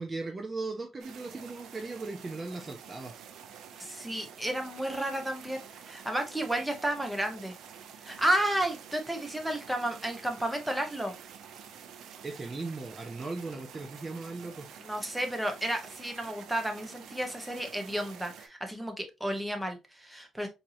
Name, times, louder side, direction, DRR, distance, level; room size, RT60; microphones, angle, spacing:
voice 1, 0.0-3.1 12.2-14.7 20.4-20.5, right 3 dB, 30° right, 0.6 m, -38 dB
sound 1, 1.0-18.5, right 8 dB, 80° right, 0.7 m, -49 dB
voice 2, 3.8-5.6 5.8-7.6 8.0-11.1 14.8-20.5, right 1 dB, 5° right, 1.0 m, -32 dB
4.5 x 2.7 x 2.7 m
cardioid pair, 90°, 0 cm